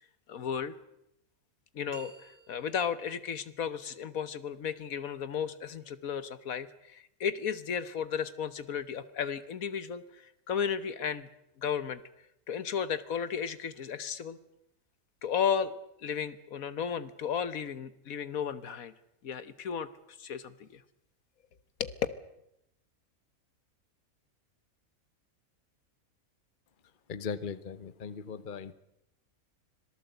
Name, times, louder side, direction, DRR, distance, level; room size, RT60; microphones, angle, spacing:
voice 1, 0.3-0.7 1.7-11.3 11.6-12.0 12.5-14.4 15.2-18.9 19.2-19.9 20.2-20.8 21.8-21.9, left 7 dB, 75° left, 14 dB, 1.5 m, -34 dB
sound 1, 1.9-3.0, right 5 dB, 45° right, 1.2 m, -51 dB
voice 2, 27.1-28.7, left 6 dB, 40° left, 15 dB, 1.0 m, -38 dB
26.0 x 18.0 x 8.0 m, 0.81 s
omnidirectional pair, 1.5 m